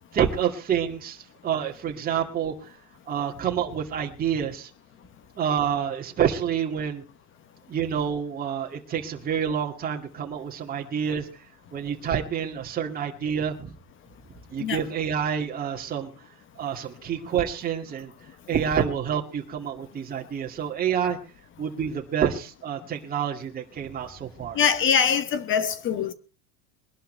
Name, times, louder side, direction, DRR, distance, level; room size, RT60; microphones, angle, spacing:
voice 1, 0.1-2.5 3.1-4.7 5.4-7.0 7.7-11.3 11.7-13.7 14.5-16.1 16.6-18.1 18.5-21.2 21.6-24.6, right 8 dB, 20° right, 2.2 m, -28 dB
voice 2, 24.5-26.1, left 7 dB, 25° left, 1.0 m, -23 dB
22.5 x 11.5 x 3.3 m
supercardioid pair, 135°, 45 cm